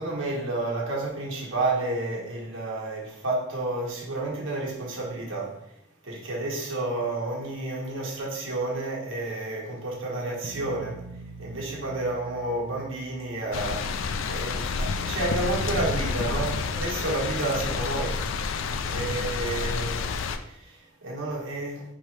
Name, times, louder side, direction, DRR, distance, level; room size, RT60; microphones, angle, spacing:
voice 1, 0.0-5.5 6.0-11.0 11.4-18.2 18.9-21.9, right 2 dB, 70° right, -3 dB, 1.2 m, -30 dB
sound 1, 10.4-15.3, right 3 dB, 30° right, 0.4 m, -45 dB
sound 2, 13.5-20.4, left 4 dB, 65° left, 0.3 m, -29 dB
4.7 x 3.0 x 3.2 m, 0.80 s
head